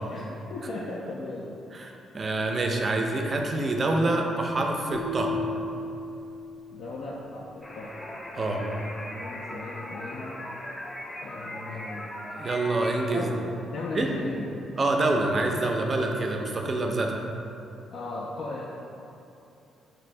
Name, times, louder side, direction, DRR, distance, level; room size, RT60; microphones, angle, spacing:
voice 1, 0.1-1.5 6.7-7.9 8.4-10.4 11.2-12.1 13.1-13.4 13.7-14.5 17.9-18.7, left 2 dB, 70° left, -4 dB, 0.3 m, -37 dB
voice 2, 1.7-5.3 8.4-8.6 12.3-13.3 13.9-14.1 14.8-17.2, right 2 dB, 35° right, 2 dB, 0.4 m, -26 dB
sound 1, 4.9-7.1, left 2 dB, 85° left, 1.1 m, -34 dB
sound 2, 7.6-13.1, left 1 dB, 25° left, 0.6 m, -39 dB
4.0 x 2.5 x 3.2 m, 2.7 s
cardioid pair, 90°, 0 cm